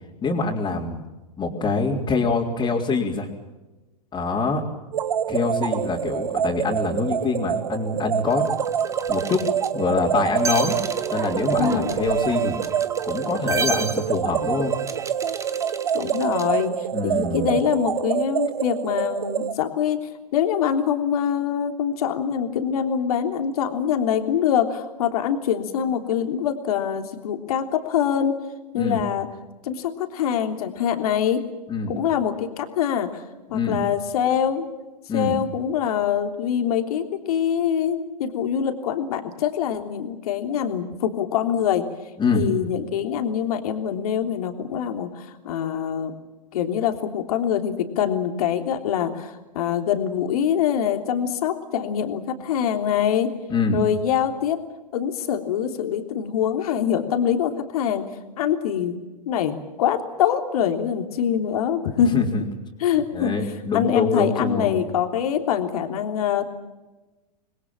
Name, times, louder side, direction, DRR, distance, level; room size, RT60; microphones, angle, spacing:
voice 1, 0.2-1.0 1.4-3.3 4.1-4.6 5.3-8.5 9.1-9.5 9.7-10.8 11.1-12.6 13.0-14.8 16.9-17.6 28.8-29.0 31.7-31.9 33.5-33.8 35.1-35.4 42.2-42.5 53.5-53.8 62.1-62.4 63.1-64.8, left 4 dB, 20° left, -5 dB, 4.0 m, -24 dB
sound 1, 4.9-19.5, right 9 dB, 75° right, 1.1 m, -26 dB
sound 2, 8.2-16.7, right 5 dB, 15° right, 1.5 m, -33 dB
voice 2, 11.6-12.0 15.9-28.4 28.7-29.3 29.6-31.4 31.9-33.2 33.5-34.7 35.1-41.8 42.3-46.1 46.5-53.3 53.7-54.6 54.9-58.0 58.4-59.0 59.3-62.3 62.8-63.3 63.7-66.5, left 9 dB, 65° left, 5 dB, 3.3 m, -24 dB
28.0 x 21.5 x 7.4 m, 1.1 s
hypercardioid pair, 110°, 21 cm